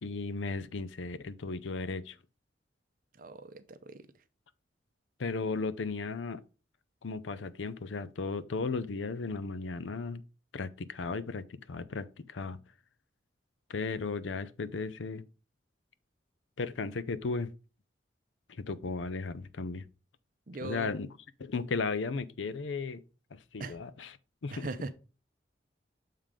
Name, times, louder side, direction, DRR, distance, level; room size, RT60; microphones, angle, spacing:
voice 1, 0.0-2.2 5.2-6.4 7.0-10.2 10.5-12.6 13.7-15.2 16.6-17.5 18.5-19.9 20.6-21.1 21.4-23.0 23.3-24.1 24.4-24.7, left 4 dB, 90° left, 0.6 m, -35 dB
voice 2, 3.1-4.1 20.5-20.9 23.6-23.8 24.5-24.9, right 2 dB, 45° right, 0.6 m, -40 dB
7.4 x 3.7 x 4.9 m
head